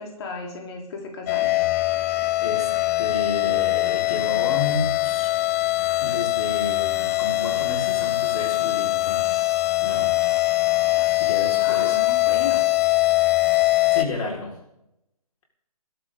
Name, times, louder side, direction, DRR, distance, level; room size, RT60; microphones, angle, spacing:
voice 1, 0.0-1.6 10.9-11.1 11.6-12.6, left 4 dB, 45° left, 1 dB, 3.7 m, -35 dB
sound 1, 1.3-14.1, left 19 dB, 25° left, 0.8 m, -22 dB
voice 2, 2.4-2.7 3.0-5.3 6.0-9.5 9.8-10.3 11.2-12.0 13.9-14.6, left 3 dB, 70° left, -1 dB, 4.8 m, -31 dB
21.0 x 12.5 x 3.9 m, 0.81 s
figure-of-eight pair, 145°, 19 cm